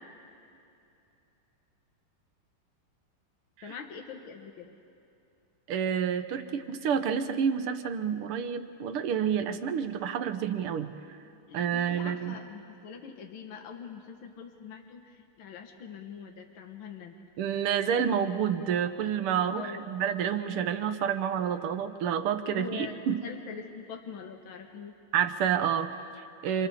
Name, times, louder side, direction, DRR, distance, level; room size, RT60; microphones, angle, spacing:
voice 1, 3.6-4.8 11.5-17.1 19.5-19.9 22.5-22.9 23.2-24.9, left 6 dB, 70° left, 3 dB, 1.9 m, -43 dB
voice 2, 5.7-10.9 11.5-12.4 17.4-23.2 25.1-26.7, right 8 dB, 85° right, 9 dB, 1.8 m, -29 dB
27.5 x 27.0 x 4.2 m, 2.6 s
omnidirectional pair, 2.4 m